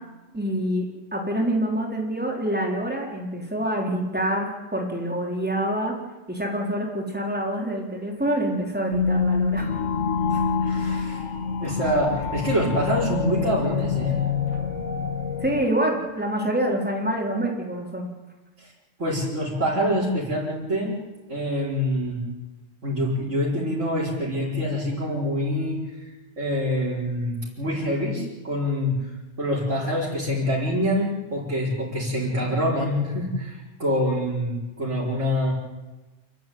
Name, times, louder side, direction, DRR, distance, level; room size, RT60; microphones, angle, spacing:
voice 1, 0.3-6.0 6.3-9.7 15.4-18.1, right 1 dB, 5° right, -1 dB, 3.8 m, -26 dB
sound 1, 8.9-15.7, left 5 dB, 70° left, 1.7 m, -26 dB
voice 2, 10.3-11.2 11.6-14.2 18.6-18.7 19.0-21.0 21.3-22.2 22.8-25.8 26.4-29.0 29.4-35.5, equal, 70° right, -8 dB, 5.3 m, -25 dB
28.5 x 12.5 x 9.4 m, 1.2 s
omnidirectional pair, 1.3 m